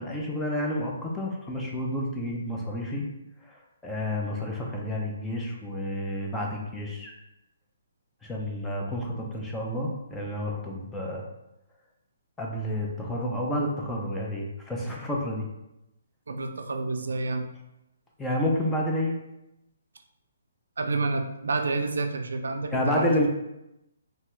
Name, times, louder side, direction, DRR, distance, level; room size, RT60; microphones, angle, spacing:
voice 1, 0.0-3.1 3.4-7.1 8.2-11.2 12.4-15.5 18.2-19.1 22.7-23.3, left 1 dB, 5° left, -1 dB, 0.3 m, -30 dB
voice 2, 16.3-17.5 20.8-23.1, right 3 dB, 90° right, 6 dB, 0.3 m, -29 dB
2.8 x 2.2 x 3.0 m, 0.88 s
hypercardioid pair, 170°, 0 cm